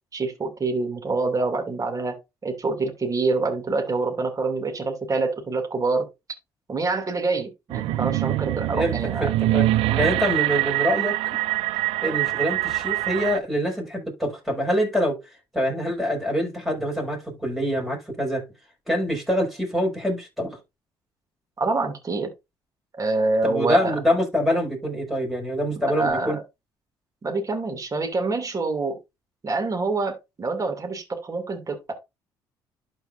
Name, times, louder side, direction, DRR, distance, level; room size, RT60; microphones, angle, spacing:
voice 1, 0.1-6.1 6.7-9.3 9.9-10.0 21.6-22.3 22.9-23.9 25.9-26.4 27.2-29.0 29.4-31.9, right 3 dB, 35° right, 2.5 m, -26 dB
sound 1, 7.7-13.4, right 17 dB, 75° right, 0.4 m, -24 dB
voice 2, 8.7-9.7 10.0-11.4 12.0-15.2 15.5-18.5 18.9-20.6 23.4-26.4, equal, ahead, 5.4 m, -25 dB
12.0 x 4.6 x 2.6 m
supercardioid pair, 65°, 10 cm